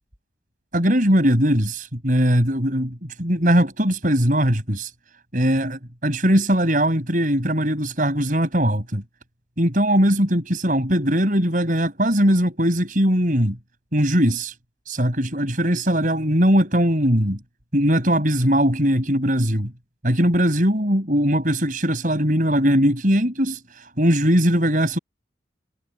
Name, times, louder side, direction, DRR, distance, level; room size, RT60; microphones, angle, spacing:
voice 1, 0.7-4.9 5.3-9.0 9.6-13.6 13.9-14.5 14.9-17.4 17.7-19.7 20.0-25.0, equal, 45° right, 6.0 m, -20 dB
head